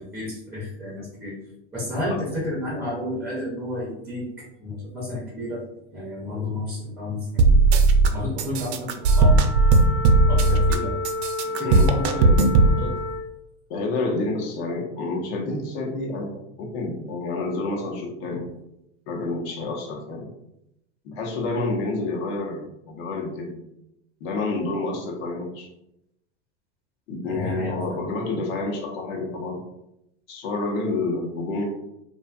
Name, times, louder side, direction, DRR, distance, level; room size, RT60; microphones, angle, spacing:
voice 1, 0.0-1.4 1.7-5.6 5.9-7.4 8.1-9.4 10.3-10.9 11.4-12.9 27.3-28.0, left 1 dB, 5° right, -4 dB, 0.4 m, -31 dB
sound 1, 7.4-8.1 8.4-10.8 11.0-12.7, right 3 dB, 65° right, 0.5 m, -17 dB
Wind instrument woodwind instrument, 9.0-13.3, left 2 dB, 85° left, 1.0 m, -31 dB
voice 2, 13.7-18.4 19.1-20.3 21.0-23.6 24.2-25.7 27.1-29.6 30.3-31.6, left 3 dB, 60° left, 0 dB, 0.8 m, -29 dB
2.6 x 2.4 x 2.2 m, 0.84 s
hypercardioid pair, 115°, 36 cm